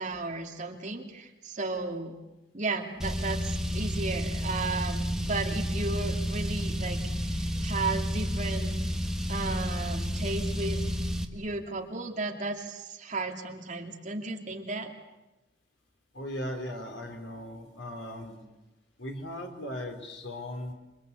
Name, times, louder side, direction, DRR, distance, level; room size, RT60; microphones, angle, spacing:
voice 1, 0.0-2.1 2.5-8.7 9.3-10.8 11.3-14.9, right 3 dB, 40° right, 2 dB, 2.7 m, -34 dB
Car, 3.0-11.3, equal, 5° right, 1.4 m, -31 dB
voice 2, 16.1-18.4 19.0-20.7, left 1 dB, 75° left, 3 dB, 4.0 m, -38 dB
27.5 x 23.0 x 8.4 m, 1.0 s
head